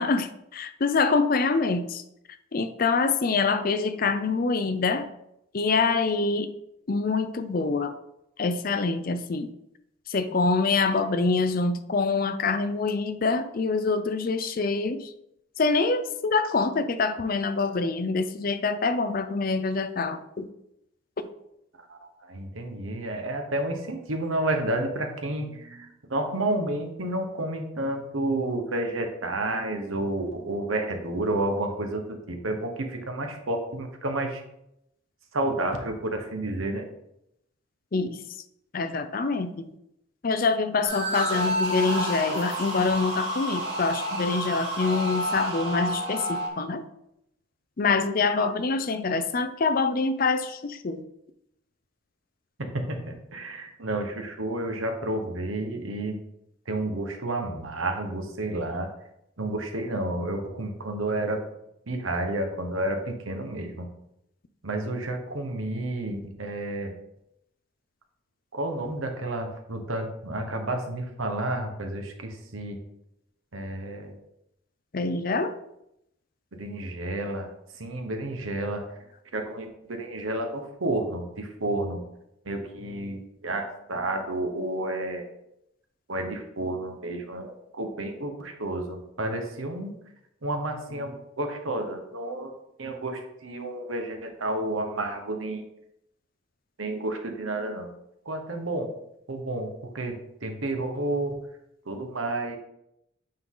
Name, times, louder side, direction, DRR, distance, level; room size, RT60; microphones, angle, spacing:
voice 1, 0.0-2.0 2.5-5.1 5.5-6.5 6.9-7.9 8.4-9.5 10.1-15.1 15.6-20.5 37.9-38.2 38.7-39.7 40.2-46.9 47.8-51.0 74.9-75.5, left 4 dB, 45° left, 10 dB, 0.5 m, -25 dB
voice 2, 21.7-34.4 35.3-36.9 52.6-56.2 56.7-58.9 59.4-61.4 61.9-63.9 64.6-66.9 68.5-72.8 73.5-74.2 76.6-77.5 77.8-78.9 79.3-82.0 82.4-85.3 86.1-89.9 90.4-92.5 92.8-95.6 96.8-97.9 98.2-98.9 99.3-100.1 100.4-101.5 101.9-102.6, right 1 dB, 90° right, 4 dB, 1.1 m, -30 dB
sound 1, 40.8-46.5, equal, 65° right, 2.3 m, -29 dB
8.7 x 3.9 x 3.8 m, 0.81 s
head